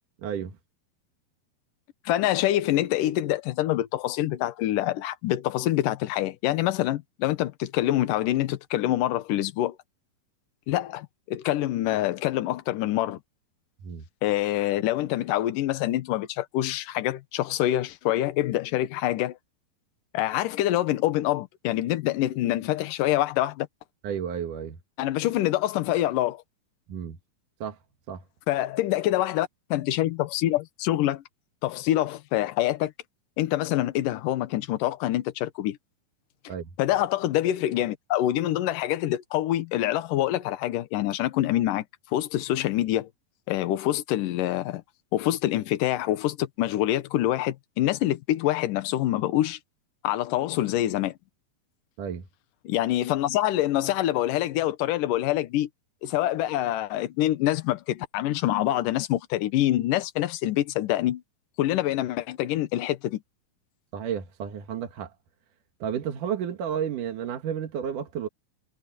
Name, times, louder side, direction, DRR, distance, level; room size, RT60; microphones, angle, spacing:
voice 1, 0.2-0.5 13.8-14.0 24.0-24.8 26.9-27.2 27.6-27.8 28.1-28.2 36.5-36.7 52.0-52.2 63.9-65.1 65.8-68.3, right 8 dB, 60° right, 2.9 m, -31 dB
voice 2, 2.1-9.8 10.7-13.2 14.2-19.4 20.1-23.7 25.0-26.4 28.5-31.2 31.6-32.9 33.4-35.8 36.8-41.9 42.1-43.1 43.5-44.8 45.1-49.6 50.0-51.1 52.6-55.7 56.0-61.2 61.6-63.2, left 14 dB, 65° left, 2.5 m, -26 dB
omnidirectional pair, 4.5 m